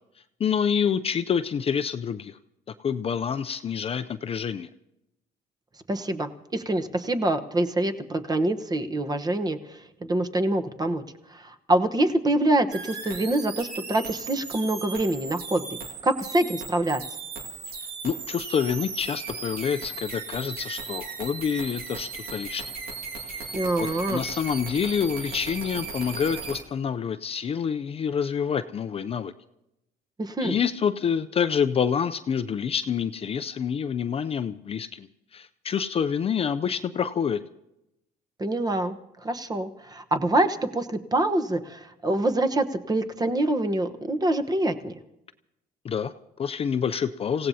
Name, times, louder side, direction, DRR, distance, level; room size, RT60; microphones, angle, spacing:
voice 1, 0.4-2.4 2.8-4.7 18.0-22.7 23.3-23.4 23.8-29.3 30.4-37.4 45.8-47.5, left 7 dB, 35° left, 10 dB, 0.5 m, -27 dB
voice 2, 5.9-11.0 11.3-15.6 16.0-17.0 23.5-24.2 30.2-30.6 38.4-44.9, right 1 dB, 25° right, 9 dB, 1.0 m, -25 dB
sound 1, 12.7-26.6, right 4 dB, 70° right, 2.0 m, -37 dB
27.5 x 16.5 x 2.8 m, 0.88 s
cardioid pair, 110°, 17 cm